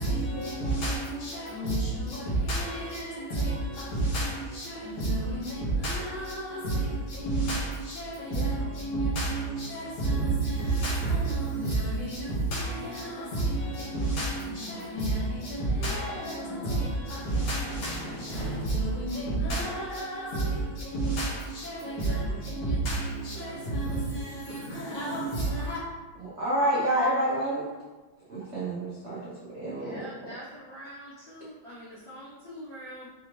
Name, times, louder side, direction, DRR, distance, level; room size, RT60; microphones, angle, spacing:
voice 1, 0.0-25.8, right 2 dB, 90° left, -8 dB, 2.2 m, -30 dB
voice 2, 26.4-27.6 28.3-29.2 29.5-30.1, right 1 dB, 80° right, -8 dB, 0.6 m, -28 dB
voice 3, 29.7-33.1, equal, 55° left, -9 dB, 1.2 m, -44 dB
5.1 x 2.5 x 3.0 m, 1.2 s
omnidirectional pair, 2.3 m